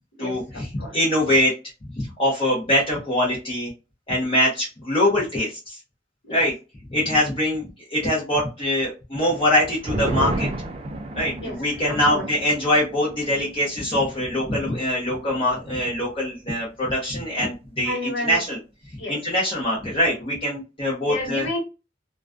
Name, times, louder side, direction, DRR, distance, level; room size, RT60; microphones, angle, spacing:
voice 1, 0.2-1.0 6.2-6.4 11.4-12.3 17.8-18.4 19.0-19.2 21.0-21.6, left 1 dB, 80° left, 1.1 m, -31 dB
voice 2, 0.7-1.5 1.9-3.7 4.1-5.8 6.3-6.5 6.9-7.6 7.9-10.5 11.1-18.6 19.1-21.4, left 1 dB, 30° left, 0.7 m, -23 dB
sound 1, 9.3-16.2 16.5-16.6 17.0-17.5, right 2 dB, 30° right, 0.3 m, -33 dB
2.3 x 2.2 x 2.4 m
head